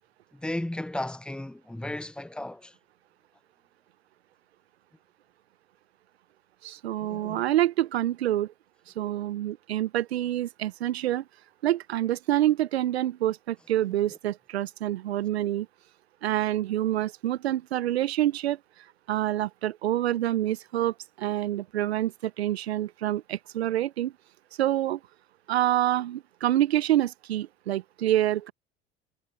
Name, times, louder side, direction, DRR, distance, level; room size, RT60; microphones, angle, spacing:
voice 1, 0.3-2.7 7.0-7.4, left 1 dB, 5° left, 0.8 m, -35 dB
voice 2, 6.6-8.5 9.0-11.2 11.6-15.7 16.2-18.6 19.1-24.1 24.6-25.0 25.5-28.5, right 13 dB, 80° right, 1.1 m, -27 dB
hypercardioid pair, 65°, 31 cm